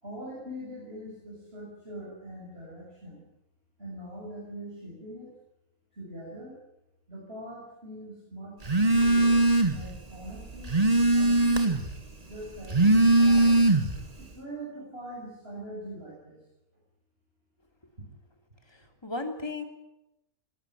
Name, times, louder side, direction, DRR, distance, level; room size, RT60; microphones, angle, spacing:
voice 1, 0.0-3.3 3.8-5.3 5.9-6.5 7.1-8.6 8.9-9.4 9.7-10.8 11.1-11.8 12.2-13.6 14.2-16.4, right 1 dB, 45° right, -5 dB, 7.2 m, -42 dB
Telephone, 8.6-9.9 10.3-11.9 12.6-14.1, right 2 dB, 25° right, 1.9 m, -21 dB
voice 2, 18.7-19.6, left 2 dB, 15° left, 4 dB, 2.8 m, -35 dB
19.0 x 19.0 x 9.3 m, 0.88 s
omnidirectional pair, 1.5 m